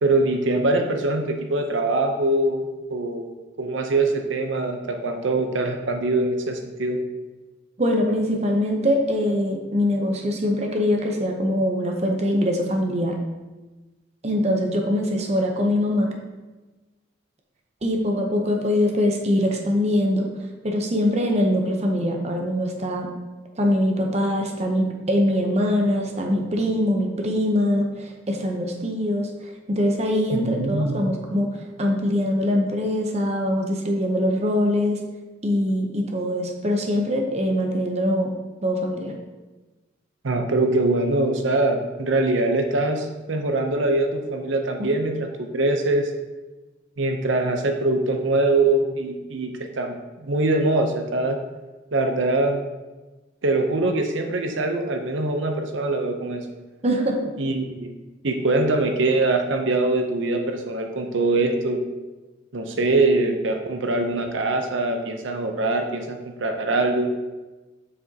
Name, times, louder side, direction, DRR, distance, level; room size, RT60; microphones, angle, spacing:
voice 1, 0.0-2.6 2.9-3.3 3.6-7.0 30.3-31.2 40.2-46.1 47.0-50.0 50.2-51.4 51.9-52.6 53.4-56.5 57.4-57.9 58.2-61.8 62.5-67.1, right 2 dB, 75° right, 4 dB, 0.7 m, -23 dB
voice 2, 7.8-13.2 14.2-16.1 17.8-20.3 20.6-23.2 23.6-35.0 35.4-38.3 38.6-39.1 44.8-44.9 56.8-57.3, left 1 dB, 35° right, 2 dB, 0.7 m, -23 dB
7.5 x 6.1 x 2.8 m, 1.2 s
head